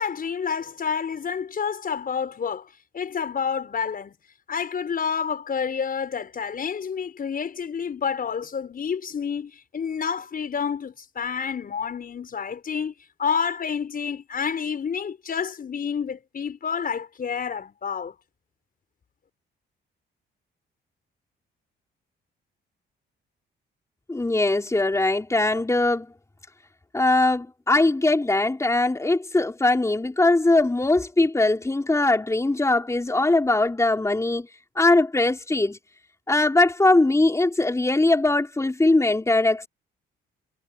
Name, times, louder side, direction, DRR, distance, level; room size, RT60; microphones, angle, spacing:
voice 1, 0.0-2.7 2.9-4.2 4.5-12.9 13.2-18.1, left 6 dB, 45° left, 6.2 m, -29 dB
voice 2, 24.1-26.1 26.9-34.5 34.8-35.8 36.3-39.7, left 2 dB, 15° left, 4.3 m, -21 dB
cardioid pair, 90°, 20 cm